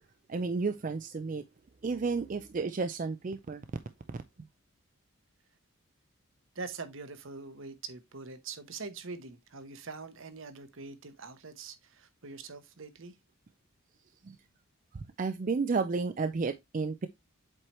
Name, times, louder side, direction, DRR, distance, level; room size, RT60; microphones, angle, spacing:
voice 1, 0.3-1.4 1.8-3.6 14.2-14.4 14.9-17.1, right 4 dB, 35° right, 0.4 m, -32 dB
voice 2, 6.5-13.1, right 4 dB, 65° right, 1.0 m, -43 dB
7.6 x 4.5 x 3.0 m
head